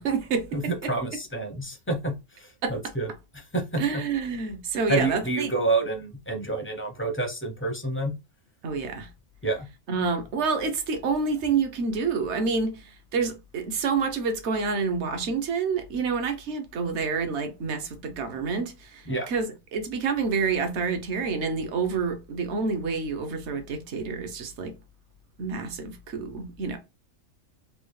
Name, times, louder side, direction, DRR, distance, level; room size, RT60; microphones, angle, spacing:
voice 1, 0.0-0.9 2.6-2.7 3.8-5.5 8.6-9.1 9.9-12.8 13.1-24.7 25.4-26.8, right 5 dB, 60° right, 1.0 m, -28 dB
voice 2, 0.5-4.0 4.9-8.1 9.4-9.7 19.1-19.3, right 2 dB, 20° left, 0.3 m, -29 dB
3.4 x 2.4 x 3.1 m
omnidirectional pair, 1.4 m